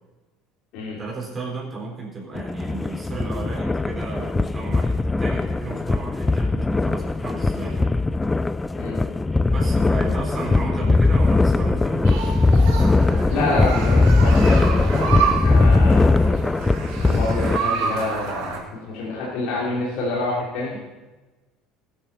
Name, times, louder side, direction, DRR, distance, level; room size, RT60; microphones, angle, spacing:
voice 1, 1.0-8.0 9.5-12.3, right 3 dB, 30° right, -3 dB, 4.1 m, -34 dB
sound 1, 2.4-17.6, left 3 dB, 15° left, 0.5 m, -20 dB
sound 2, 12.0-18.6, right 6 dB, 65° right, 4.1 m, -28 dB
voice 2, 13.3-16.2 17.0-20.7, left 2 dB, 60° left, -5 dB, 3.1 m, -27 dB
18.5 x 10.0 x 4.2 m, 1.2 s
figure-of-eight pair, 65°, 0 cm